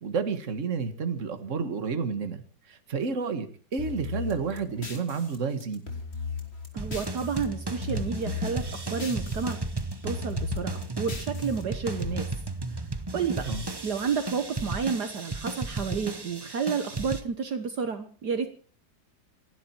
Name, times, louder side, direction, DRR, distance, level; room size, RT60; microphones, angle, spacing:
voice 1, 0.0-2.4 2.7-5.8 13.5-13.6, right 5 dB, 45° right, 8 dB, 1.9 m, -30 dB
sound 1, 3.8-7.4 7.7-9.5 9.8-12.1, left 5 dB, 35° left, 3.4 m, -37 dB
voice 2, 6.7-9.6 10.0-12.3 12.7-12.9 13.1-13.4 13.8-18.5, right 6 dB, 65° right, 8 dB, 1.8 m, -31 dB
sound 2, 6.8-17.2, right 2 dB, 20° right, 0.6 m, -34 dB
28.0 x 11.5 x 4.5 m, 0.43 s
omnidirectional pair, 2.0 m